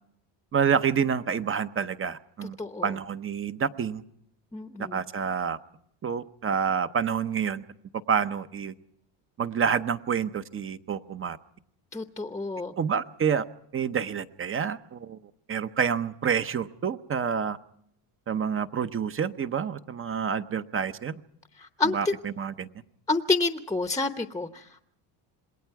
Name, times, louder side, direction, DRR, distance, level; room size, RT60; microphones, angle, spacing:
voice 1, 0.5-2.6 2.8-4.0 4.9-5.6 6.0-7.6 8.1-8.7 9.4-11.4 12.8-13.5 13.7-15.2 15.5-17.6 18.3-21.1 21.9-22.7, right 7 dB, 30° right, 12 dB, 0.8 m, -28 dB
voice 2, 2.6-2.9 4.5-5.0 11.9-12.7 21.6-22.1 23.1-24.8, left 3 dB, 10° left, 8 dB, 0.8 m, -29 dB
27.5 x 21.0 x 4.7 m, 0.70 s
cardioid pair, 135°, 44 cm